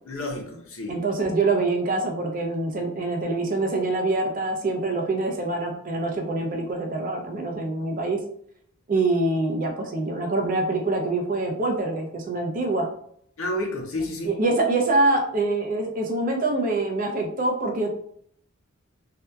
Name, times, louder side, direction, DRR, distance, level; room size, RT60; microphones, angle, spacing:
voice 1, 0.0-1.0 13.4-14.4, left 1 dB, 70° left, 2 dB, 0.6 m, -30 dB
voice 2, 0.9-8.2 8.9-12.9 14.2-17.9, right 2 dB, 40° right, 2 dB, 0.5 m, -25 dB
2.7 x 2.2 x 2.2 m, 0.67 s
head